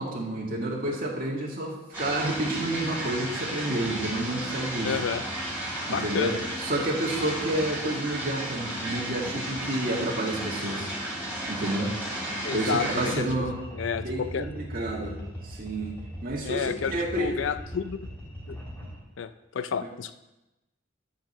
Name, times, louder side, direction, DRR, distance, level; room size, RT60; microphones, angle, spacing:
voice 1, 0.0-5.0 5.9-6.3 6.6-11.0 11.5-11.9 12.5-13.5 13.9-15.2 15.4-15.9 16.2-17.3, right 1 dB, 45° right, -2 dB, 2.1 m, -30 dB
sound 1, 1.9-13.1, right 1 dB, 10° right, 4.3 m, -33 dB
voice 2, 4.8-5.2 5.9-6.4 12.4-13.5 13.7-14.5 16.4-18.1 18.5-18.6 19.2-20.1, left 6 dB, 70° left, 11 dB, 0.4 m, -31 dB
sound 2, 13.3-19.0, equal, 10° left, 3.1 m, -40 dB
12.5 x 4.5 x 6.7 m, 0.98 s
head